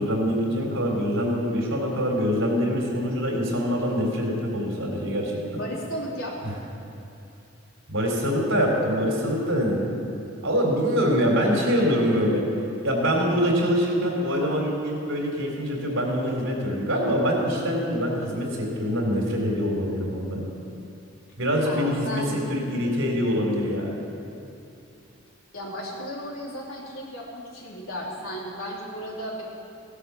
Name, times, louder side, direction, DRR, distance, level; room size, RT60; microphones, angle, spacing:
voice 1, 0.0-5.6 6.4-6.5 7.9-10.0 10.4-12.4 12.8-20.5 21.4-22.2 22.5-23.9, equal, 70° right, -1 dB, 3.9 m, -24 dB
voice 2, 5.6-6.4 21.6-22.4 25.5-29.4, equal, 90° left, -3 dB, 3.4 m, -34 dB
16.5 x 11.5 x 7.1 m, 2.7 s
head